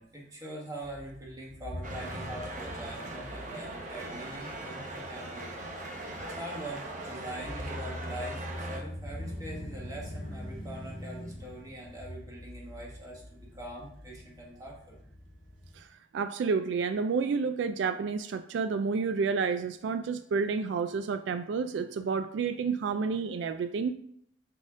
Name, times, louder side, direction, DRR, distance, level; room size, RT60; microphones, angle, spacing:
voice 1, 0.0-5.7 6.4-15.0, right 1 dB, 20° right, -3 dB, 1.4 m, -43 dB
sound 1, 0.8-15.8, left 1 dB, 40° left, 1.8 m, -44 dB
sound 2, 1.8-8.8, right 2 dB, 40° right, 0.8 m, -40 dB
voice 2, 16.1-23.9, right 5 dB, 70° right, 10 dB, 0.3 m, -30 dB
6.6 x 4.1 x 3.6 m, 0.70 s
head